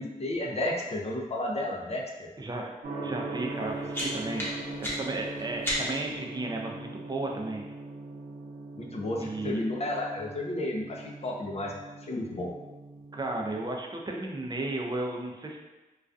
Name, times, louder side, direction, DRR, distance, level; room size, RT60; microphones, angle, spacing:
voice 1, 0.0-2.3 3.6-3.7 8.8-11.7 12.0-12.5, left 1 dB, 45° left, -1 dB, 0.5 m, -32 dB
voice 2, 2.4-2.7 3.0-4.5 4.8-7.6 9.2-9.6 13.1-15.6, right 2 dB, 30° right, 0 dB, 0.4 m, -34 dB
Gong, 2.8-13.7, right 3 dB, 80° right, 0.6 m, -40 dB
sound 1, 3.5-6.2, equal, 15° left, 0.9 m, -35 dB
2.3 x 2.2 x 2.5 m, 1.1 s
cardioid pair, 50°, 15 cm